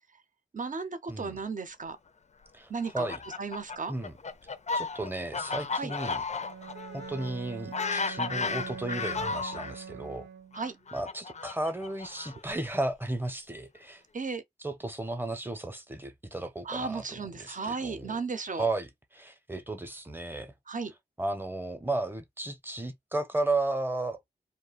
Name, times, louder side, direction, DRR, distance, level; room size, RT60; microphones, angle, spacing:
voice 1, 0.5-2.0 2.7-3.1 3.4-3.9 5.8-5.9 10.5-10.8 14.1-14.4 16.6-18.7 20.7-20.9, right 4 dB, 45° right, 0.6 m, -34 dB
voice 2, 1.1-1.4 2.5-2.7 2.9-3.2 3.9-4.1 4.7-6.2 6.9-10.3 10.9-14.0 14.6-18.2 18.5-20.5 21.2-24.2, right 2 dB, 10° right, 0.7 m, -34 dB
Fowl, 2.8-9.7 10.5-12.6, left 4 dB, 40° left, 0.4 m, -34 dB
Bowed string instrument, 6.3-10.8, right 7 dB, 90° right, 0.5 m, -43 dB
2.4 x 2.2 x 3.9 m
cardioid pair, 55°, 18 cm